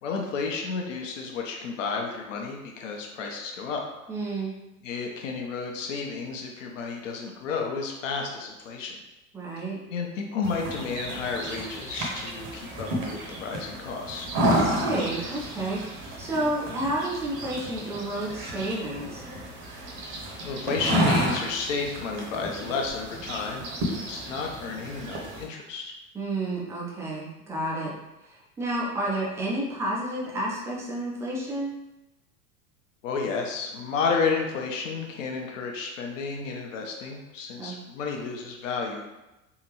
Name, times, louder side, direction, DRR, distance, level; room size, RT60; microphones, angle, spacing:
voice 1, 0.0-3.8 4.8-9.0 9.9-14.3 20.4-25.9 33.0-39.0, left 4 dB, 55° left, 1 dB, 0.8 m, -31 dB
voice 2, 4.1-4.5 9.3-9.8 14.4-19.2 26.1-27.9 28.2-31.7 37.6-37.8, right 1 dB, 5° right, -4 dB, 0.4 m, -30 dB
sound 1, 10.4-25.5, right 1 dB, 35° right, 0.9 m, -31 dB
3.7 x 2.5 x 3.0 m, 0.98 s
figure-of-eight pair, 85°, 47 cm